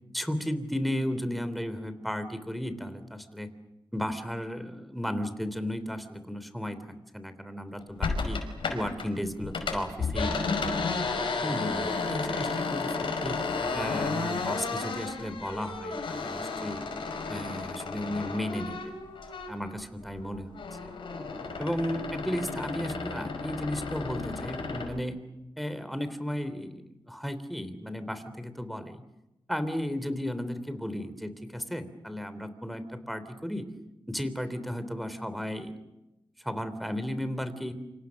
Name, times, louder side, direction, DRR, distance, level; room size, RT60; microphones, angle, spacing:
voice 1, 0.1-3.5 3.9-6.8 7.1-8.4 8.7-10.7 11.4-13.4 13.7-16.8 17.3-19.1 19.5-20.6 21.6-25.2 25.6-29.0 29.5-33.6 34.1-35.7 36.4-37.7, equal, ahead, 10 dB, 3.3 m, -34 dB
sound 1, 8.0-9.1 9.4-19.7 20.1-24.9, left 4 dB, 75° left, 5.6 m, -33 dB
28.5 x 26.5 x 6.5 m, 0.96 s
cardioid pair, 70°, 9 cm